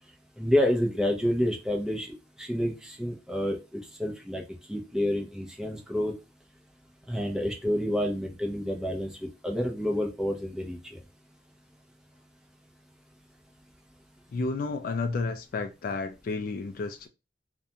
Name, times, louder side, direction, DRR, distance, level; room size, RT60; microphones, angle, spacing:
voice 1, 0.4-3.6 4.0-4.4 4.7-6.1 7.1-11.0, left 1 dB, 5° right, 0.6 m, -28 dB
voice 2, 14.3-17.1, left 3 dB, 50° left, 0.3 m, -31 dB
2.4 x 2.1 x 2.7 m
head